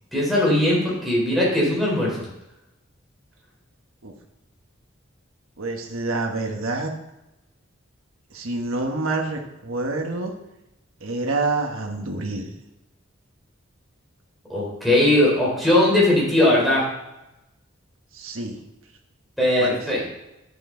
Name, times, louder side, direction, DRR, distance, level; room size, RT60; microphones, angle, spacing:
voice 1, 0.1-2.3 14.5-16.8 19.4-20.2, left 1 dB, ahead, -5 dB, 3.8 m, -19 dB
voice 2, 5.6-6.9 8.3-10.3 11.0-12.5 18.1-18.6 19.6-19.8, right 3 dB, 90° right, 2 dB, 1.3 m, -27 dB
9.5 x 7.7 x 3.8 m, 0.91 s
head